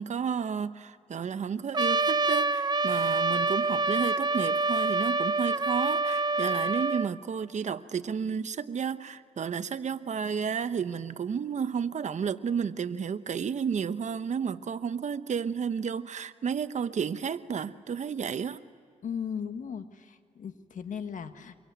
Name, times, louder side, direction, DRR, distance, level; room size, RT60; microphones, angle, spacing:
voice 1, 0.0-18.6, right 7 dB, 65° right, 12 dB, 0.9 m, -32 dB
Trumpet, 1.7-7.1, right 3 dB, 30° right, 0.7 m, -26 dB
voice 2, 19.0-21.5, left 7 dB, 75° left, 9 dB, 1.5 m, -37 dB
25.5 x 23.0 x 9.4 m, 2.3 s
cardioid pair, 85°, 13 cm